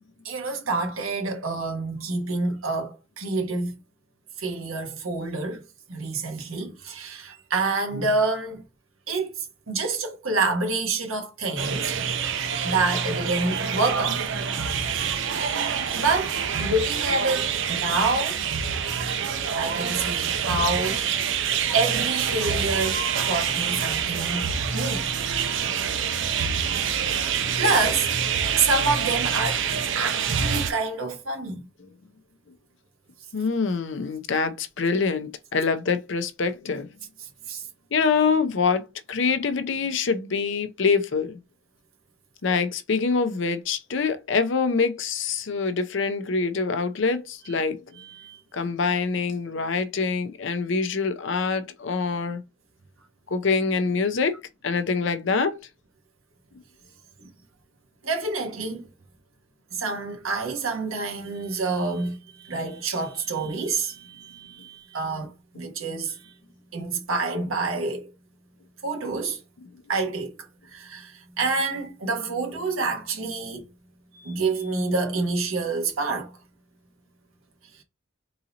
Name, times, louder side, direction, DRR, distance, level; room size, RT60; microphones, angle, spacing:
voice 1, 0.2-3.7 4.4-8.6 9.1-11.9 12.6-14.2 15.9-18.4 19.6-21.3 21.7-25.1 27.6-28.1 28.6-29.6 29.9-31.6 37.5-37.6 48.0-48.4 58.0-58.9 59.7-66.3 66.7-68.1 68.8-69.4 69.9-73.7 74.1-76.3, right 3 dB, 85° right, 1.3 m, -27 dB
sound 1, 11.6-30.7, right 7 dB, 65° right, 0.6 m, -26 dB
voice 2, 33.3-36.9 37.9-41.4 42.4-47.8 48.5-52.4 53.3-55.6 64.3-64.4, left 4 dB, 60° left, 0.5 m, -25 dB
3.9 x 2.8 x 3.9 m
head